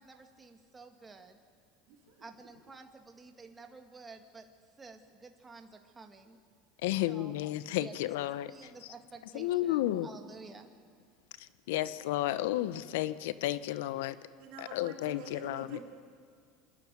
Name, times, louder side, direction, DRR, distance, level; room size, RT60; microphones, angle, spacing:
voice 1, 0.0-1.4 2.2-4.5 4.8-6.4 7.1-7.3 7.7-7.9 8.5-10.7, right 4 dB, 20° right, 5 dB, 2.0 m, -51 dB
voice 2, 1.9-2.2 14.4-15.8, right 5 dB, 70° right, 1 dB, 3.7 m, -48 dB
voice 3, 6.8-8.7 9.3-10.1 11.4-14.3 14.6-15.8, left 15 dB, 75° left, 16 dB, 0.7 m, -32 dB
27.0 x 11.5 x 9.4 m, 2.1 s
hypercardioid pair, 95°, 0 cm